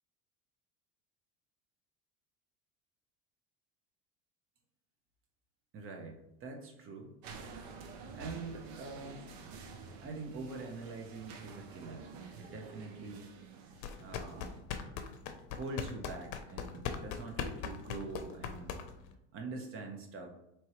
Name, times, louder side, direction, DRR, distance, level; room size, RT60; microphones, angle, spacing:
voice 1, 5.7-7.1 8.1-9.3 10.0-12.1 12.4-13.3 14.0-14.6 15.6-18.8 19.3-20.3, right 3 dB, 40° right, 3 dB, 1.0 m, -44 dB
sound 1, 7.2-14.6, right 5 dB, 75° right, 0.8 m, -50 dB
sound 2, 13.8-19.1, left 7 dB, 65° left, 0.6 m, -40 dB
4.3 x 3.1 x 3.1 m, 0.85 s
supercardioid pair, 100°, 32 cm